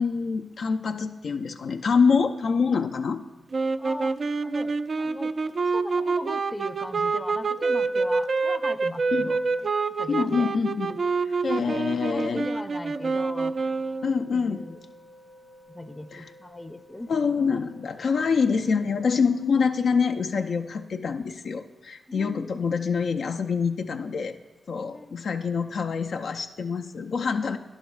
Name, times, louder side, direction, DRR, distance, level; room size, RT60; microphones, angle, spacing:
voice 1, 0.0-3.2 9.1-9.3 10.1-11.0 11.3-12.5 14.0-14.6 16.1-16.2 17.1-24.3 24.7-27.6, left 5 dB, 65° left, 6 dB, 0.4 m, -25 dB
sound 1, 3.5-14.3, right 4 dB, 55° right, 0.3 m, -27 dB
voice 2, 3.8-5.3 5.6-9.4 10.0-10.5 11.5-13.6 14.3-14.8 15.7-17.1 18.0-18.1 22.1-22.5 24.9-25.3, left 1 dB, 20° left, 10 dB, 0.5 m, -39 dB
sound 2, 13.5-20.9, left 1 dB, 85° left, 2.9 m, -53 dB
11.5 x 10.5 x 2.3 m, 1.2 s
supercardioid pair, 45°, 0 cm